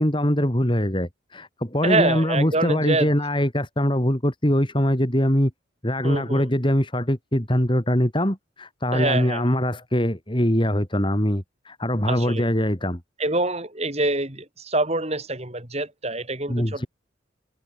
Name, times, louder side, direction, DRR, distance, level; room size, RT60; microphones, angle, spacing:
voice 1, 0.0-5.5 5.8-13.0 16.5-16.9, equal, 25° left, 3.7 m, -22 dB
voice 2, 1.8-3.1 6.0-6.5 8.9-9.5 12.1-12.5 13.2-16.9, right 2 dB, 30° right, 4.1 m, -25 dB
head